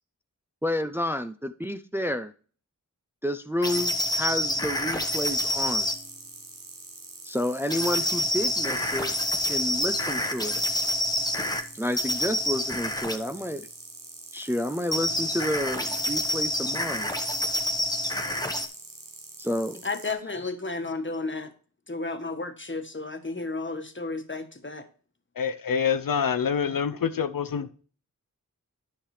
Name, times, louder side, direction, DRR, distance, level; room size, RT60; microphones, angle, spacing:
voice 1, 0.6-2.3 3.2-5.9 7.2-9.1 9.4-10.6 11.7-13.7 14.3-17.1 19.4-19.8, left 1 dB, 5° right, 0.5 m, -30 dB
sound 1, 3.6-6.0 7.7-11.6 12.0-13.2 14.9-18.7, equal, 10° left, 1.2 m, -27 dB
sound 2, 5.1-20.1, right 3 dB, 70° right, 1.4 m, -45 dB
voice 2, 19.8-21.5 21.9-24.9, left 3 dB, 35° left, 1.3 m, -33 dB
voice 3, 25.4-27.7, left 7 dB, 80° left, 0.6 m, -26 dB
10.0 x 5.8 x 3.3 m
wide cardioid pair, 45°, 34 cm